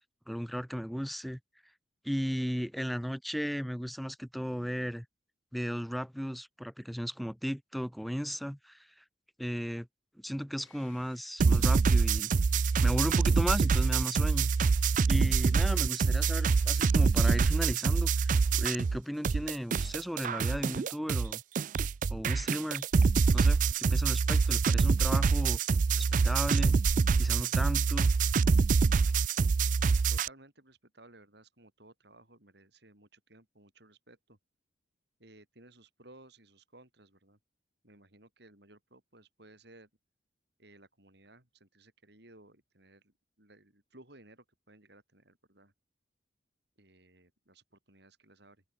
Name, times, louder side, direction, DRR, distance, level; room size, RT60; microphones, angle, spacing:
voice 1, 0.3-1.4 2.0-5.1 5.5-9.0 9.4-9.9 10.2-12.3 12.8-14.5 15.1-21.4 22.1-22.9 23.3-25.6 26.0-26.8 27.2-28.1, equal, ahead, 1.9 m, -35 dB
Sawing, 10.6-17.4, left 9 dB, 85° left, 7.4 m, -61 dB
sound 1, 11.4-19.0 19.2-30.3, right 5 dB, 45° right, 0.4 m, -25 dB
voice 2, 30.1-34.4 35.2-37.4 37.8-39.9 40.6-45.7 46.8-48.6, right 2 dB, 60° right, 6.7 m, -58 dB
open air
head